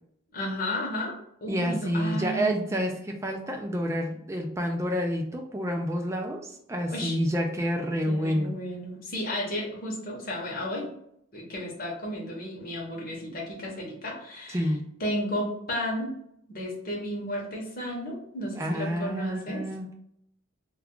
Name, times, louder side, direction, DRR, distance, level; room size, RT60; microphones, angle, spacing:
voice 1, 0.3-2.9 6.9-7.2 8.0-10.9 11.3-14.6 15.0-16.1 16.5-19.7, equal, 45° left, -2 dB, 0.8 m, -33 dB
voice 2, 1.5-8.5 14.5-14.8 18.6-19.9, equal, 15° right, 2 dB, 0.3 m, -29 dB
2.3 x 2.3 x 3.6 m, 0.72 s
head